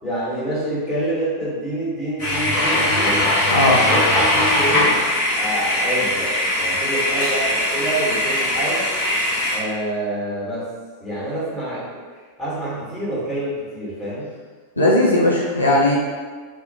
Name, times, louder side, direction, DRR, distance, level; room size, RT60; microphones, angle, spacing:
voice 1, 0.0-3.3 3.6-4.0 4.3-5.0 5.4-8.9 9.5-10.7 11.0-12.0 12.4-14.3, right 1 dB, 15° left, -10 dB, 1.2 m, -27 dB
sound 1, 2.2-9.6, left 1 dB, 45° left, 0.8 m, -20 dB
voice 2, 3.5-3.8 14.8-15.9, left 1 dB, 85° left, -5 dB, 0.4 m, -17 dB
2.3 x 2.1 x 2.7 m, 1.5 s
figure-of-eight pair, 90°, 0 cm